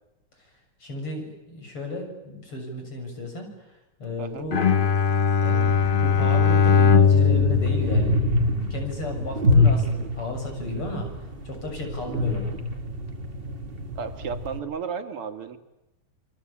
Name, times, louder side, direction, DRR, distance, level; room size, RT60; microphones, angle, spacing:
voice 1, 0.8-4.7 5.1-8.1 8.5-12.6, left 1 dB, 90° left, 4 dB, 7.9 m, -34 dB
Bowed string instrument, 4.5-8.9, left 6 dB, 45° left, 0.6 m, -20 dB
sound 1, 5.7-14.6, left 1 dB, 25° right, 2.2 m, -26 dB
voice 2, 14.0-15.6, right 6 dB, 90° right, 8 dB, 2.8 m, -33 dB
28.5 x 22.5 x 8.7 m, 1.0 s
omnidirectional pair, 2.4 m